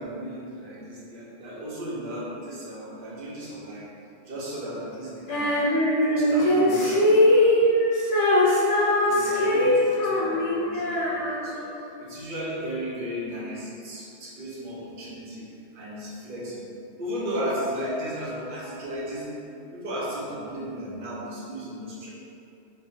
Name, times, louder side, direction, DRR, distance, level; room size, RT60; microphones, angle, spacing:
voice 1, 0.0-3.9 4.3-5.5 6.1-7.1 9.0-15.5 15.7-16.6 17.0-19.3 19.7-22.1, equal, 50° right, -7 dB, 0.9 m, -35 dB
Female singing, 5.3-11.8, left 1 dB, 70° left, 1.0 m, -21 dB
3.3 x 3.1 x 2.7 m, 2.6 s
omnidirectional pair, 1.3 m